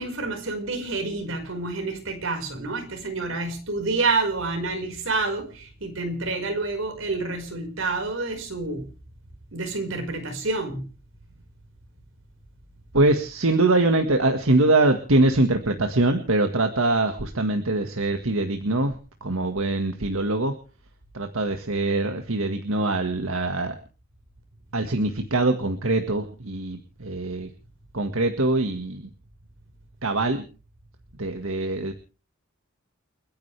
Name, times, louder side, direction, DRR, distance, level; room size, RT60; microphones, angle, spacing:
voice 1, 0.0-8.8 9.5-10.9, right 3 dB, 70° right, 5 dB, 5.2 m, -28 dB
voice 2, 12.9-20.5 21.1-23.8 24.7-27.5 27.9-29.1 30.0-30.4 31.2-31.9, right 2 dB, 90° right, 5 dB, 1.8 m, -23 dB
29.5 x 10.5 x 3.4 m, 0.36 s
head